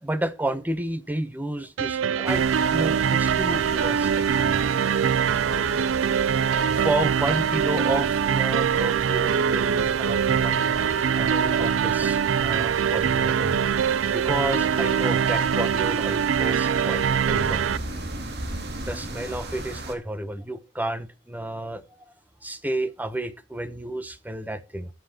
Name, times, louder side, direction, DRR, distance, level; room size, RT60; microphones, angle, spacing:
voice 1, 0.0-2.4 2.7-4.6 6.2-10.8 11.2-13.6 14.1-17.6 18.8-22.1 22.4-24.9, right 1 dB, 10° right, 0.7 m, -31 dB
sound 1, 1.8-17.8, right 7 dB, 85° right, 0.4 m, -23 dB
sound 2, 2.3-19.9, right 1 dB, 55° right, 2.3 m, -36 dB
14.0 x 8.0 x 2.8 m
head